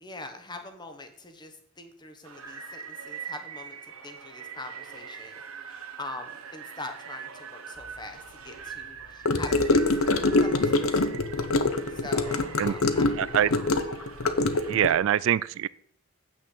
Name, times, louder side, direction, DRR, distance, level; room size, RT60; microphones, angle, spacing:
voice 1, 0.0-10.1 10.4-11.1 11.9-13.1, left 2 dB, 20° left, 6 dB, 1.2 m, -43 dB
sound 1, 2.2-15.0, right 6 dB, 80° right, 1.4 m, -43 dB
Gurgling / Car passing by / Sink (filling or washing), 9.2-14.9, left 2 dB, 75° left, 0.8 m, -24 dB
voice 2, 13.2-13.5 14.7-15.7, right 10 dB, 65° right, 18 dB, 0.3 m, -24 dB
8.5 x 6.4 x 7.2 m, 0.68 s
head